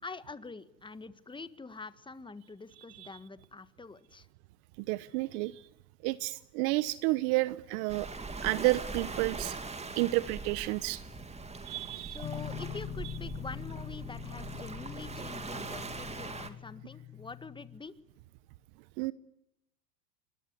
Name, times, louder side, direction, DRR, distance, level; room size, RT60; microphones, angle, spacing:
voice 1, 0.0-4.3 12.1-18.0, left 4 dB, 10° left, 13 dB, 1.5 m, -45 dB
voice 2, 4.8-5.7 6.0-8.1 8.4-9.6 9.9-11.0 11.6-12.3 19.0-19.1, right 20 dB, 55° right, 17 dB, 1.0 m, -31 dB
Waves surf, 7.9-16.5, right 3 dB, 15° right, 2.7 m, -41 dB
sound 1, 12.2-17.8, left 12 dB, 35° left, 1.8 m, -43 dB
26.0 x 21.5 x 9.6 m, 0.84 s
supercardioid pair, 115°, 48 cm